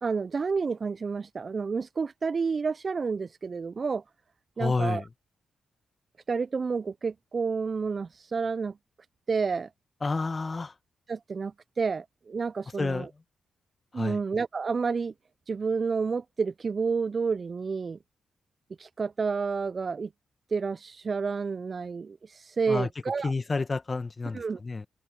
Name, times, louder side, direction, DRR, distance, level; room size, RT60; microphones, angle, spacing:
voice 1, 0.0-4.0 4.6-5.0 6.3-8.8 9.3-9.7 11.1-13.1 13.9-15.1 15.5-18.0 18.8-20.1 20.5-23.3 24.3-24.6, right 5 dB, 50° right, 0.3 m, -30 dB
voice 2, 4.6-5.0 10.0-10.7 12.8-13.1 13.9-14.2 22.7-22.9 23.2-24.9, left 3 dB, 35° left, 1.2 m, -29 dB
supercardioid pair, 50°, 0 cm